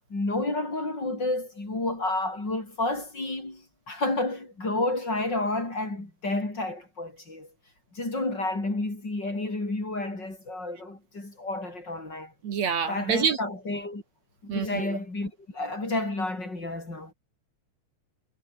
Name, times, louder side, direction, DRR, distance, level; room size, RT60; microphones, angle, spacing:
voice 1, 0.1-7.5 7.9-12.3 12.9-14.0 14.4-17.1, left 2 dB, 35° left, 7.2 m, -30 dB
voice 2, 12.4-13.4 14.5-15.0, right 6 dB, 60° right, 3.3 m, -27 dB
omnidirectional pair, 3.5 m